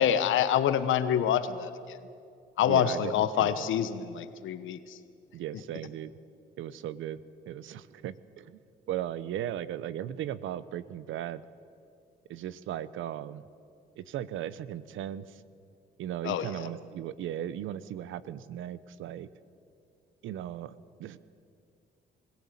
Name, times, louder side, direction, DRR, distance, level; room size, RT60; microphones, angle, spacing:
voice 1, 0.0-2.0 2.6-5.0 16.2-16.7, left 9 dB, 80° left, 12 dB, 1.2 m, -27 dB
voice 2, 2.7-3.7 5.3-6.1 6.6-7.2 7.5-8.6 8.9-11.4 12.3-13.4 14.0-15.4 16.0-19.3 20.2-20.7 21.0-21.2, right 11 dB, 80° right, 16 dB, 0.8 m, -37 dB
21.5 x 16.0 x 8.6 m, 2.4 s
cardioid pair, 90°, 20 cm